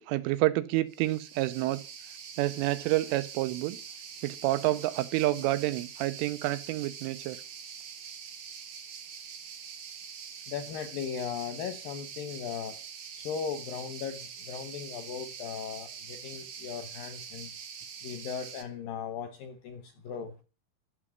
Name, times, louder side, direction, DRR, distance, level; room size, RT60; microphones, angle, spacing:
voice 1, 0.0-1.8 2.4-3.8 4.2-7.4 20.1-20.3, right 17 dB, 85° right, 3.4 m, -29 dB
sound 1, 0.9-18.6, right 7 dB, 55° right, 2.2 m, -44 dB
voice 2, 10.5-12.8 13.1-17.5 18.0-20.3, left 7 dB, 75° left, 2.0 m, -38 dB
12.5 x 7.3 x 8.6 m
omnidirectional pair, 5.6 m